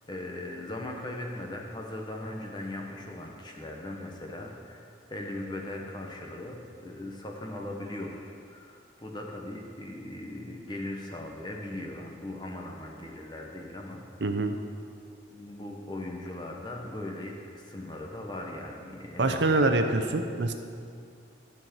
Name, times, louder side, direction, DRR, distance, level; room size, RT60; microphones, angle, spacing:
voice 1, 0.1-14.2 15.3-19.7, left 1 dB, 25° left, 0 dB, 1.1 m, -39 dB
voice 2, 14.2-14.6 19.2-20.5, right 2 dB, 80° right, 6 dB, 0.7 m, -25 dB
12.5 x 4.6 x 7.3 m, 2.3 s
head